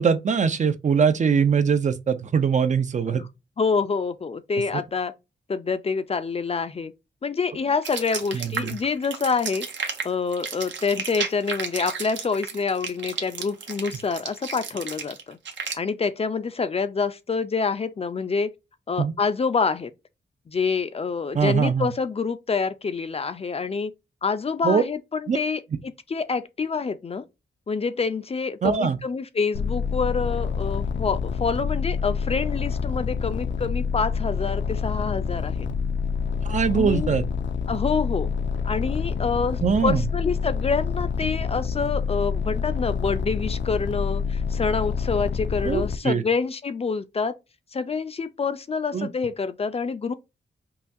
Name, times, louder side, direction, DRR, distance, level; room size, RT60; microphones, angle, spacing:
voice 1, 0.0-3.2 8.3-8.8 19.0-19.1 21.3-21.9 24.6-24.8 25.3-25.4 28.6-29.0 36.4-37.2 39.6-40.0 45.6-46.2 48.9-49.1, right 6 dB, 40° right, 0.4 m, -22 dB
voice 2, 3.6-5.1 5.5-6.9 7.2-9.7 10.0-15.4 15.8-18.5 18.9-19.9 20.5-23.9 24.2-27.2 27.7-35.7 36.7-37.1 37.7-38.3 38.6-47.3 47.7-50.1, left 5 dB, 35° left, 0.4 m, -27 dB
sound 1, 7.8-15.7, right 6 dB, 80° right, 1.0 m, -33 dB
sound 2, 29.5-46.0, left 5 dB, 85° left, 0.6 m, -27 dB
5.5 x 2.3 x 2.6 m
wide cardioid pair, 155°, 19 cm